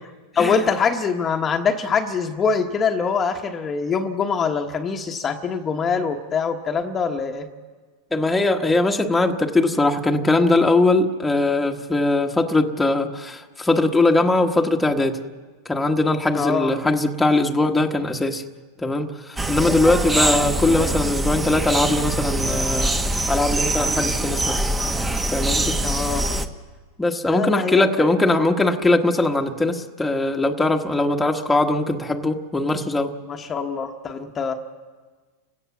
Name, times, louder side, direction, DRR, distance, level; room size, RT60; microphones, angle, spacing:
voice 1, 0.3-7.5 16.3-16.7 25.8-26.2 27.3-28.1 33.3-34.5, left 5 dB, 25° left, 4 dB, 1.3 m, -24 dB
voice 2, 8.1-15.2 15.6-18.4 18.8-24.7 25.3-25.8 27.0-33.1, left 2 dB, 5° left, 2 dB, 1.4 m, -20 dB
sound 1, 19.4-26.5, right 2 dB, 10° right, 1.1 m, -23 dB
30.0 x 16.5 x 7.2 m, 1.4 s
supercardioid pair, 130°, 0 cm